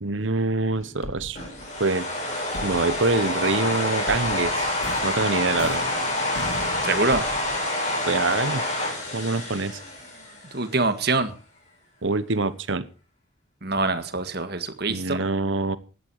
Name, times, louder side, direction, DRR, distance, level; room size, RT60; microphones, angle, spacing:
voice 1, 0.0-1.4 1.8-2.1 2.6-4.8 5.0-5.8 8.1-8.6 9.1-9.8 12.0-12.9 14.9-15.8, right 3 dB, 70° right, 15 dB, 1.1 m, -25 dB
sound 1, 0.8-2.2 2.5-7.6, left 1 dB, 80° left, 2.4 m, -39 dB
sound 2, 1.3-10.6, left 1 dB, 35° left, 7.7 m, -27 dB
voice 2, 6.8-7.2 10.5-11.3 13.6-15.2, right 3 dB, 50° right, 9 dB, 1.8 m, -24 dB
16.5 x 11.0 x 4.8 m, 0.35 s
head